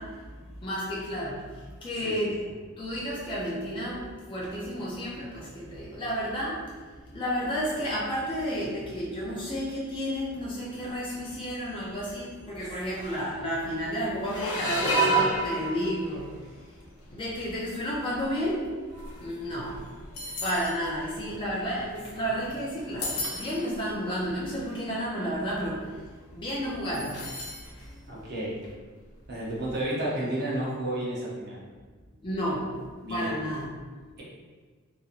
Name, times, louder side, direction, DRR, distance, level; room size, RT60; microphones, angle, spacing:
voice 1, 0.0-2.4 2.8-18.7 19.1-28.2 32.2-33.6, equal, 25° left, -6 dB, 0.5 m, -32 dB
sound 1, 10.9-11.3 11.6-11.9 12.6-12.7 12.9-13.5 14.2-16.4 17.0-17.3 18.0-22.5 22.8-23.8 24.5-24.6 24.8-25.2 26.9-27.7 28.1-28.2 29.5-29.6, right 1 dB, 85° left, 0.6 m, -31 dB
voice 2, 28.1-28.6 29.3-31.6 33.0-33.3, right 1 dB, 50° right, -6 dB, 0.8 m, -31 dB
2.9 x 2.5 x 2.4 m, 1.4 s
head